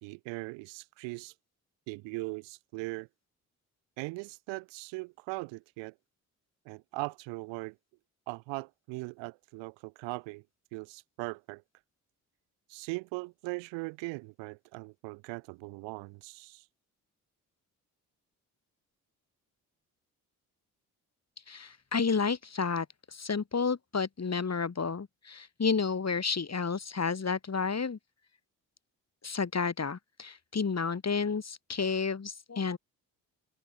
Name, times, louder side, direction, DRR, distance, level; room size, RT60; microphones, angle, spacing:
voice 1, 0.0-1.3 1.9-3.1 4.0-5.9 6.7-7.8 8.3-10.4 10.7-11.6 12.7-16.7, right 27 dB, 80° right, 3.5 m, -39 dB
voice 2, 21.5-22.9 23.1-28.0 29.2-32.8, left 5 dB, 35° left, 4.6 m, -31 dB
open air
hypercardioid pair, 45°, 44 cm